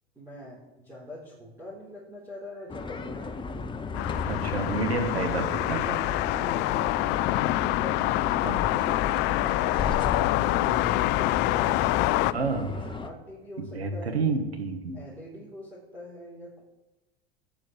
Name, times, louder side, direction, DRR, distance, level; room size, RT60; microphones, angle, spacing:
voice 1, 0.2-3.9 9.3-14.2 14.9-16.6, left 1 dB, 10° right, -6 dB, 4.3 m, -44 dB
sound 1, 2.7-13.1, left 4 dB, 15° left, 0.9 m, -35 dB
sound 2, 3.9-12.3, left 17 dB, 35° left, 0.4 m, -26 dB
voice 2, 4.3-6.2 8.4-8.6 12.3-12.9 13.6-15.1, right 4 dB, 85° right, 5 dB, 1.9 m, -30 dB
12.5 x 9.4 x 6.4 m, 1.1 s
figure-of-eight pair, 85°, 31 cm